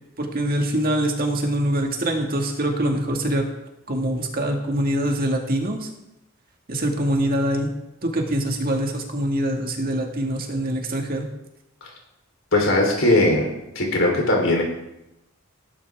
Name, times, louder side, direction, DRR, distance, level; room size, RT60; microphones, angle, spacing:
voice 1, 0.2-3.5 3.9-5.9 6.7-7.7 8.0-11.3, right 1 dB, 45° right, 2 dB, 2.0 m, -24 dB
voice 2, 12.5-13.5 13.8-14.6, left 1 dB, 65° left, 0 dB, 3.7 m, -19 dB
18.0 x 11.0 x 3.6 m, 0.90 s
head